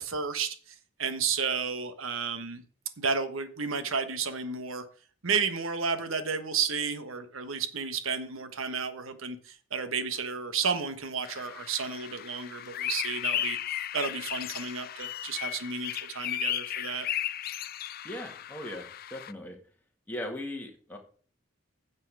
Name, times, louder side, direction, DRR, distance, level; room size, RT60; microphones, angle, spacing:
voice 1, 0.0-2.6 3.0-4.9 5.2-17.1, right 5 dB, 80° right, 1.3 m, -32 dB
sound 1, 11.3-19.3, left 11 dB, 45° left, 0.4 m, -35 dB
voice 2, 18.0-19.6 20.1-21.0, left 1 dB, 10° left, 2.0 m, -38 dB
9.5 x 7.5 x 4.8 m
head